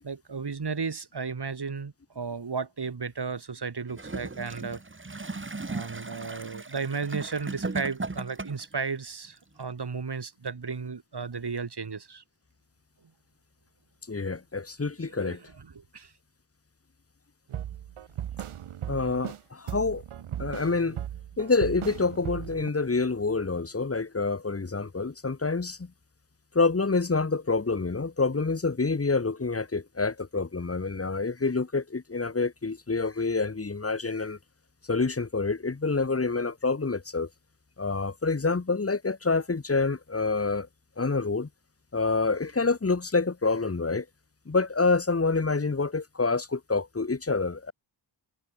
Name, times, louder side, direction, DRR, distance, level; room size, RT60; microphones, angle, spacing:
voice 1, 0.0-4.8 5.1-5.2 5.7-12.2 15.1-16.1, right 5 dB, 55° right, 6.6 m, -34 dB
Gurgling / Toilet flush, 3.9-8.8 9.6-9.7, right 3 dB, 25° right, 2.2 m, -37 dB
voice 2, 14.1-15.4 18.9-20.0 20.4-21.0 21.4-25.9 26.5-34.4 34.9-37.3 37.8-40.7 41.0-41.5 41.9-44.1 44.5-47.7, left 4 dB, 30° left, 2.1 m, -27 dB
sound 1, 17.5-19.4 19.7-22.7, right 10 dB, 80° right, 1.3 m, -37 dB
cardioid pair, 60°, 49 cm